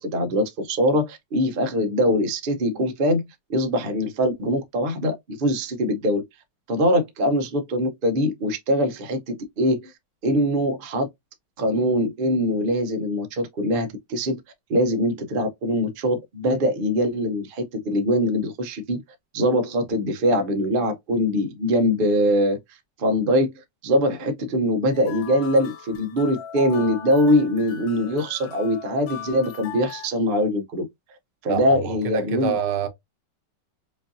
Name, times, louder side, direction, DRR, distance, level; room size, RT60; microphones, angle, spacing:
voice 1, 0.0-3.2 3.5-6.2 6.7-9.9 10.2-11.1 11.6-14.4 14.7-19.0 19.3-22.6 23.0-23.5 23.8-30.8 31.4-32.6, equal, 45° right, 0.7 m, -22 dB
sound 1, 24.9-30.1, left 8 dB, 65° left, 1.3 m, -39 dB
voice 2, 31.5-32.9, right 8 dB, 80° right, 1.5 m, -27 dB
5.4 x 2.6 x 2.6 m
omnidirectional pair, 1.9 m